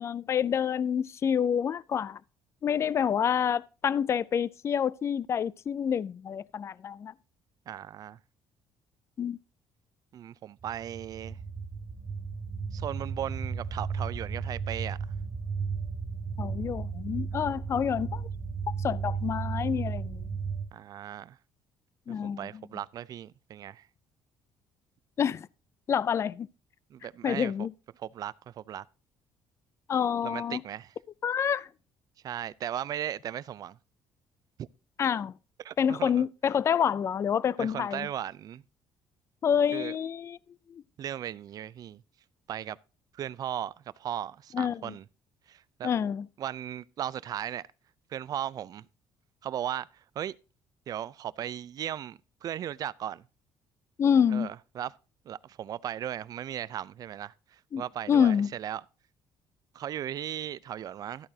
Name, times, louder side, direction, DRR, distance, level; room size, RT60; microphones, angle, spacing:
voice 1, 0.0-2.2 2.6-7.1 9.2-9.4 16.4-18.3 18.8-20.3 22.1-22.5 25.2-25.5 25.9-26.5 27.2-27.7 29.9-30.6 31.2-31.7 35.0-35.3 35.8-38.1 39.4-40.4 40.7-40.8 44.5-44.9 45.8-46.3 54.0-54.5 57.7-58.5, left 8 dB, 35° left, 0.4 m, -27 dB
voice 2, 7.7-8.2 10.1-11.4 12.7-15.0 20.7-21.4 22.1-23.9 26.9-27.5 28.0-28.8 30.2-30.9 32.2-33.8 34.6-34.7 35.6-36.2 37.6-38.6 39.7-39.9 41.0-42.0 42.5-42.8 43.1-45.0 45.5-45.9 46.4-47.7 48.1-48.9 49.4-50.4 50.9-53.2 54.3-54.9 55.3-58.8 59.7-61.3, right 10 dB, 50° right, 0.5 m, -37 dB
sound 1, 10.6-20.6, right 5 dB, 30° right, 2.4 m, -34 dB
13.0 x 8.8 x 2.8 m
cardioid pair, 130°, 8 cm